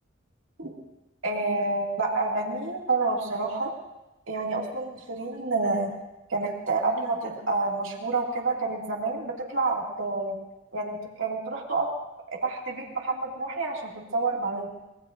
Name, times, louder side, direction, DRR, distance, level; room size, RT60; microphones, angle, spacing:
voice 1, 1.2-3.7 4.3-5.9 6.3-10.4 10.7-11.9 12.3-14.7, right 3 dB, 80° right, -2 dB, 2.3 m, -28 dB
25.0 x 21.5 x 2.6 m, 1.0 s
head